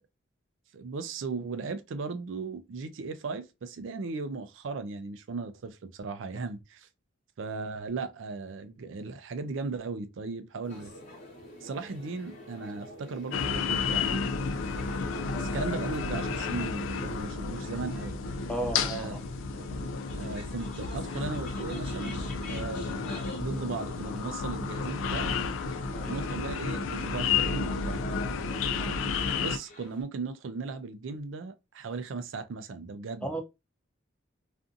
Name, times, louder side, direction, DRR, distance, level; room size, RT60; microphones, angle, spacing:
voice 1, 0.7-6.9 7.4-10.9 11.6-14.3 15.4-18.2 18.9-19.2 19.5-19.9 20.2-22.2 22.5-25.4 26.1-28.0 29.4-33.3, right 4 dB, 75° right, 0.4 m, -37 dB
sound 1, 10.6-17.3, equal, 70° left, 0.8 m, -48 dB
sound 2, 10.7-30.0, left 2 dB, 40° left, 0.9 m, -53 dB
sound 3, 13.3-29.6, left 5 dB, 85° left, 0.3 m, -31 dB
voice 2, 18.5-19.2 25.9-26.1 28.8-29.0 33.2-33.4, right 1 dB, 5° left, 0.4 m, -34 dB
2.5 x 2.5 x 2.4 m
head